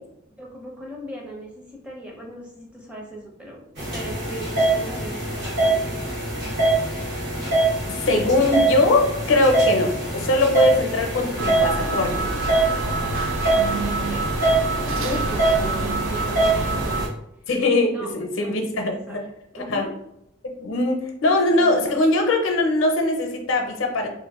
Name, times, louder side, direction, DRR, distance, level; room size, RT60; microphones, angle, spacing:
voice 1, 0.4-6.1 13.6-14.3 14.8-17.1 17.9-18.7 19.1-19.2 19.5-19.9 21.4-21.8, right 1 dB, 5° right, -3 dB, 0.6 m, -38 dB
sound 1, 3.8-17.1, right 2 dB, 55° right, 1.0 m, -24 dB
voice 2, 7.9-12.1 15.0-15.2 17.5-19.2 19.7-19.9 20.4-24.1, left 2 dB, 80° left, 3 dB, 0.6 m, -21 dB
sound 2, 11.4-17.1, right 3 dB, 85° right, 0.4 m, -27 dB
2.4 x 2.2 x 3.5 m, 0.80 s
head